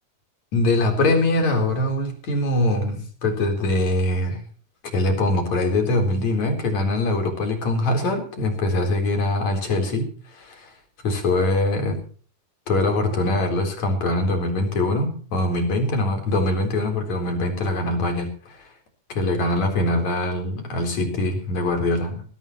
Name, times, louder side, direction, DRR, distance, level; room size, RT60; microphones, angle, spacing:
voice 1, 0.5-4.4 4.9-10.7 11.0-12.0 12.7-18.7 19.1-22.2, left 2 dB, 60° left, 3 dB, 5.3 m, -23 dB
21.5 x 16.5 x 3.1 m, 0.43 s
omnidirectional pair, 3.7 m